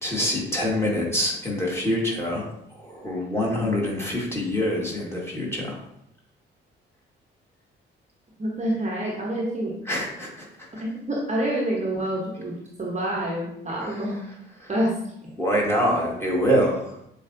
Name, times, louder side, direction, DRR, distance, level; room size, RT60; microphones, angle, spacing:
voice 1, 0.0-2.5 2.7-5.8 9.9-10.5 13.8-14.0 14.6-14.7 15.4-17.0, equal, 10° left, -3 dB, 1.7 m, -25 dB
voice 2, 8.4-9.7 10.8-14.2 14.7-15.0, right 1 dB, 25° right, -3 dB, 1.0 m, -27 dB
7.2 x 2.4 x 2.6 m, 0.75 s
figure-of-eight pair, 40°, 29 cm